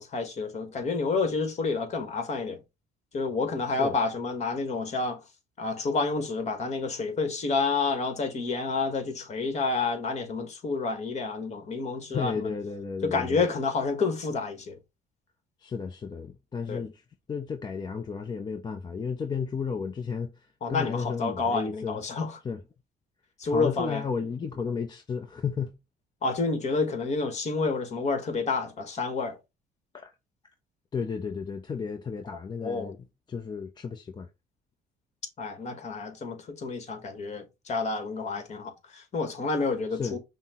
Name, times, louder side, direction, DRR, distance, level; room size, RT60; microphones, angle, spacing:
voice 1, 0.0-2.6 3.1-5.2 5.6-12.5 13.0-14.8 16.7-16.8 20.6-22.3 23.4-24.0 26.2-29.3 32.6-32.9 35.4-40.2, left 4 dB, 40° left, 1.3 m, -29 dB
voice 2, 12.1-13.4 15.6-17.0 17.3-22.0 22.4-22.6 23.4-25.7 29.9-30.1 30.9-34.3 39.9-40.2, left 5 dB, 25° left, 0.5 m, -33 dB
5.6 x 2.1 x 4.2 m
cardioid pair, 110°, 17 cm